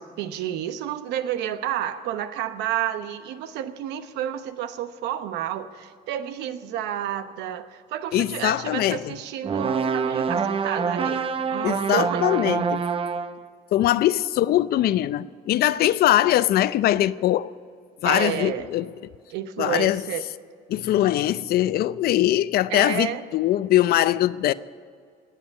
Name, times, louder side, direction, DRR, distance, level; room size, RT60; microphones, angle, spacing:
voice 1, 0.0-12.4 18.0-18.7 19.3-20.2 22.7-23.2, right 10 dB, 90° right, 1.0 m, -30 dB
voice 2, 8.1-9.1 11.6-12.8 13.7-17.5 18.0-18.9 19.6-20.0 20.7-24.5, left 13 dB, 65° left, 0.5 m, -22 dB
sound 1, 9.4-13.4, right 5 dB, 35° right, 0.7 m, -26 dB
19.0 x 7.6 x 9.5 m
cardioid pair, 110°, 17 cm